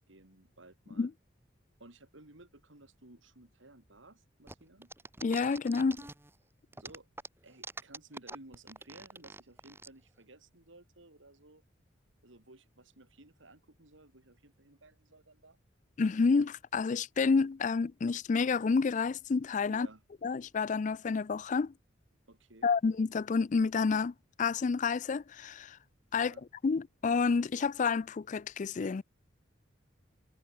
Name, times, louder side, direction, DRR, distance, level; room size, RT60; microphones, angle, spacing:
voice 1, 0.1-1.1 1.8-4.9 6.7-7.1 7.4-11.6 12.2-15.6 19.7-20.0 20.9-21.0 22.3-22.7 26.2-26.4, right 2 dB, 90° right, 3.7 m, -56 dB
sound 1, 4.5-6.3 6.7-9.9, right 3 dB, 10° right, 1.2 m, -45 dB
voice 2, 5.2-6.0 16.0-19.9 20.2-21.7 22.6-25.8 26.1-26.3 26.6-29.0, left 4 dB, 40° left, 0.4 m, -29 dB
head